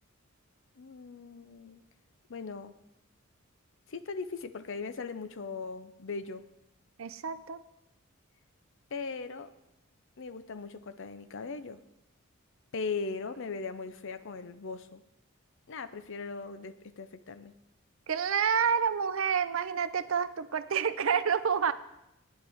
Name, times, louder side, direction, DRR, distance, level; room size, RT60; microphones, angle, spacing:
voice 1, 0.8-1.8 2.3-2.7 3.9-6.4 8.9-9.5 10.2-11.8 12.7-15.0 15.7-17.5, left 4 dB, 60° left, 11 dB, 0.6 m, -39 dB
voice 2, 7.0-7.6 18.1-21.7, right 7 dB, 65° right, 13 dB, 0.5 m, -28 dB
13.5 x 9.8 x 3.5 m, 0.88 s
head